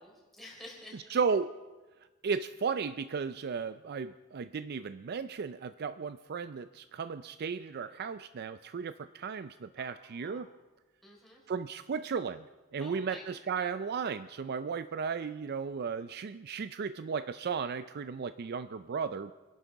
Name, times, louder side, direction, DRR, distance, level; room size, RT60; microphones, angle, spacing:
voice 1, 0.0-1.2 9.8-10.4 11.0-11.4 12.8-13.2, left 1 dB, ahead, -3 dB, 4.2 m, -50 dB
voice 2, 1.1-1.5 2.2-10.5 11.5-12.4 12.7-19.3, right 5 dB, 50° right, 12 dB, 0.4 m, -35 dB
25.0 x 11.5 x 4.6 m, 1.2 s
head